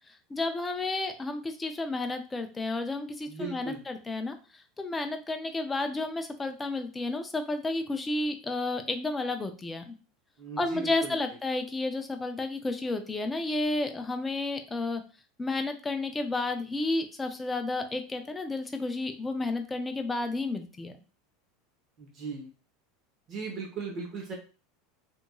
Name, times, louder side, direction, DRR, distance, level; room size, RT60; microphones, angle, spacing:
voice 1, 0.3-4.3 4.8-10.0 10.6-15.0 15.4-20.9, left 2 dB, 10° left, 6 dB, 0.3 m, -31 dB
voice 2, 3.3-3.8 10.4-11.1 22.0-22.5 23.3-24.3, right 3 dB, 35° right, -1 dB, 0.8 m, -37 dB
2.8 x 2.6 x 2.2 m, 0.35 s
supercardioid pair, 155°, 0 cm